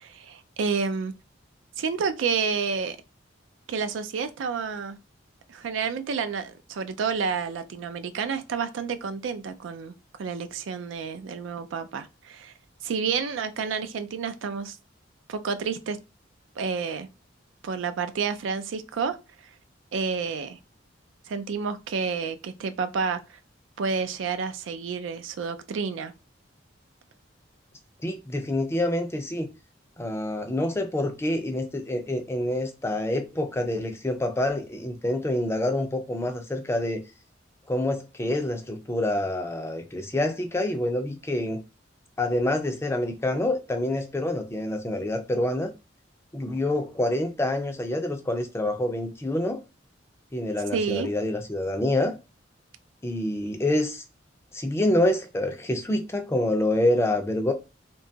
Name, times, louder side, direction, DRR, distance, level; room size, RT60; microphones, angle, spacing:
voice 1, 0.0-1.1 1.8-3.0 3.7-5.0 5.5-9.9 10.2-12.5 12.8-14.8 15.3-16.0 16.6-17.1 17.6-19.2 19.9-20.6 21.3-23.4 23.8-26.1 50.7-51.1, right 5 dB, 85° right, 0.4 m, -29 dB
voice 2, 28.0-29.5 30.0-37.0 37.7-41.6 42.2-45.7 46.3-49.6 50.3-52.1 53.0-54.0 54.5-57.5, left 1 dB, 15° left, 0.4 m, -27 dB
2.8 x 2.2 x 2.6 m
head